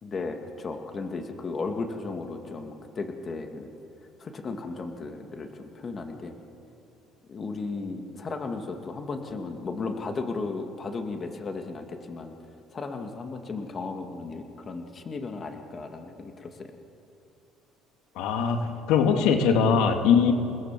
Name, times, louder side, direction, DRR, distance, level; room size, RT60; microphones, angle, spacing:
voice 1, 0.0-3.7 4.2-6.4 7.3-12.3 12.7-16.7, left 3 dB, 30° left, 5 dB, 2.3 m, -35 dB
voice 2, 18.2-20.3, left 6 dB, 80° left, 5 dB, 2.2 m, -21 dB
29.5 x 20.0 x 7.6 m, 2.8 s
cardioid pair, 125°, 0 cm